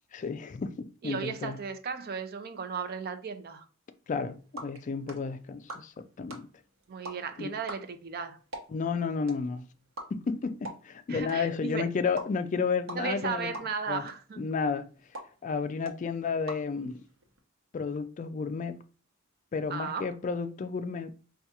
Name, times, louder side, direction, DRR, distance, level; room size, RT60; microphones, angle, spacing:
voice 1, 0.1-1.6 4.1-6.5 7.4-7.5 8.7-9.6 10.1-13.5 13.9-14.0 14.4-14.9 15.4-17.0 17.7-18.8 19.5-21.1, left 5 dB, 40° left, 0.3 m, -32 dB
voice 2, 1.0-3.7 6.9-8.4 11.1-11.9 12.9-14.5 19.7-20.1, right 5 dB, 50° right, 0.5 m, -35 dB
sound 1, 4.1-17.4, right 1 dB, 75° right, 0.9 m, -47 dB
4.6 x 2.3 x 2.8 m
head